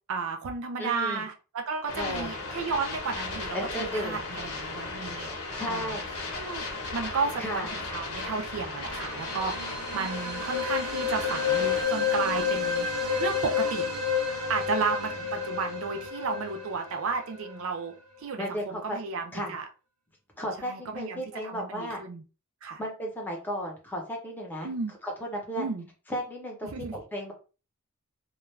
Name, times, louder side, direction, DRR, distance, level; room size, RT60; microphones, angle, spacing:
voice 1, 0.1-5.3 5.7-5.9 6.4-6.6 6.9-9.5 9.9-12.9 13.2-13.9 14.5-17.9 18.2-19.6 20.6-22.2 22.6-22.8 24.6-24.9 25.6-25.9 26.6-27.0, right 4 dB, 70° right, 0.4 m, -33 dB
voice 2, 0.8-1.2 1.9-2.3 3.5-4.2 5.5-6.0 7.4-7.7 18.4-19.0 19.3-19.5 20.4-22.0 22.8-24.7 25.0-25.7 26.1-27.3, equal, 10° left, 0.7 m, -34 dB
sound 1, 1.9-11.9, left 3 dB, 80° left, 0.9 m, -36 dB
sound 2, 8.8-17.6, left 6 dB, 90° right, 0.8 m, -30 dB
2.3 x 2.2 x 3.1 m
head